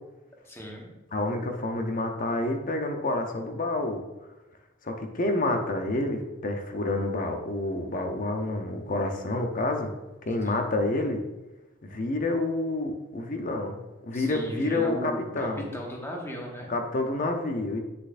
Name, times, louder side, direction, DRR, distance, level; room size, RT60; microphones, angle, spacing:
voice 1, 0.4-0.9 10.4-10.6 14.1-16.7, equal, 15° left, -1 dB, 1.2 m, -36 dB
voice 2, 1.1-4.0 4.8-9.9 10.3-11.2 11.8-15.7 16.7-17.8, left 2 dB, 45° left, 5 dB, 0.8 m, -28 dB
7.9 x 6.7 x 2.6 m, 1.1 s
head